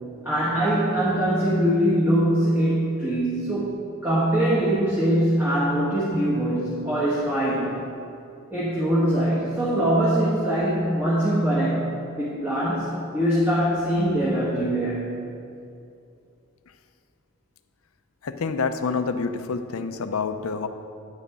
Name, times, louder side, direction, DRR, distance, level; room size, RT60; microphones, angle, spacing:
voice 1, 0.2-3.7 4.0-7.8 8.5-15.1, right 1 dB, 10° right, -9 dB, 1.7 m, -22 dB
voice 2, 18.2-20.7, left 4 dB, 70° left, 9 dB, 0.6 m, -27 dB
9.8 x 9.8 x 3.6 m, 2.5 s
head